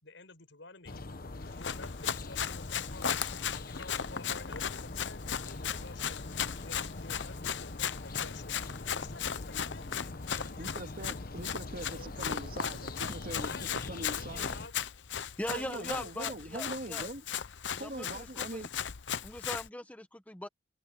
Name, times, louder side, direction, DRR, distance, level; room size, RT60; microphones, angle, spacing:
voice 1, 0.0-3.2 3.6-6.3 6.6-10.1 10.3-10.8 11.8-12.6 12.9-13.0 13.4-13.8 14.0-14.7 15.5-16.1, left 3 dB, 90° left, 5.4 m, -51 dB
sound 1, 0.9-14.7, left 2 dB, 50° left, 1.1 m, -43 dB
Run, 1.4-19.7, left 8 dB, 75° left, 0.8 m, -37 dB
voice 2, 10.6-14.5 15.5-17.2 17.8-18.7, right 1 dB, 50° right, 2.3 m, -42 dB
voice 3, 15.4-17.1 17.7-18.7 19.2-20.5, left 1 dB, 10° left, 1.3 m, -40 dB
open air
head